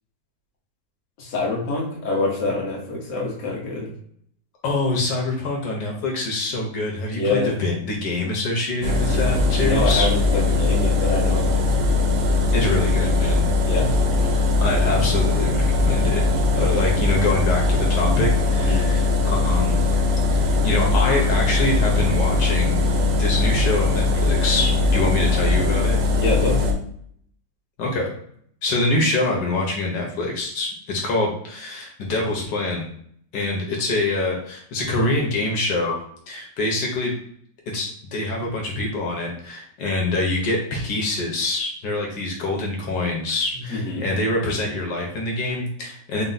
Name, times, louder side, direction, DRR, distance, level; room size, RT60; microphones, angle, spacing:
voice 1, 1.2-3.9 7.1-7.5 9.6-11.7 13.6-13.9 16.5-16.8 18.6-18.9 26.2-26.7 43.7-44.1, left 2 dB, 50° left, -3 dB, 1.4 m, -26 dB
voice 2, 4.6-10.1 12.5-13.4 14.3-16.3 16.6-19.8 20.3-22.8 23.2-26.0 27.8-28.1 28.6-32.9 33.3-36.0 36.3-37.1 37.7-46.2, left 2 dB, 85° left, -1 dB, 1.5 m, -25 dB
sound 1, 8.8-26.7, left 3 dB, 65° right, 0.9 m, -20 dB
4.4 x 2.1 x 3.9 m, 0.64 s
omnidirectional pair, 1.8 m